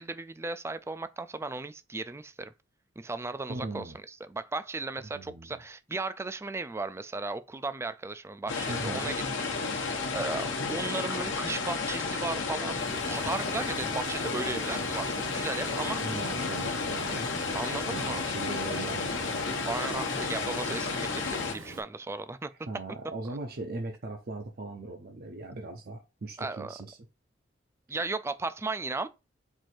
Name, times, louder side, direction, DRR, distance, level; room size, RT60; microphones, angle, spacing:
voice 1, 0.0-2.5 3.0-15.1 15.3-16.0 17.5-18.2 19.6-22.5 23.3-23.4 26.4-26.7 27.9-29.1, right 3 dB, 15° right, 0.3 m, -36 dB
voice 2, 3.5-4.0 5.1-5.6 8.7-9.1 16.0-19.5 22.7-27.0, right 2 dB, 50° right, 0.6 m, -39 dB
sound 1, 8.5-21.5, left 4 dB, 70° left, 1.0 m, -32 dB
Water, 12.8-21.8, right 2 dB, 80° right, 1.4 m, -44 dB
4.6 x 2.6 x 4.3 m
head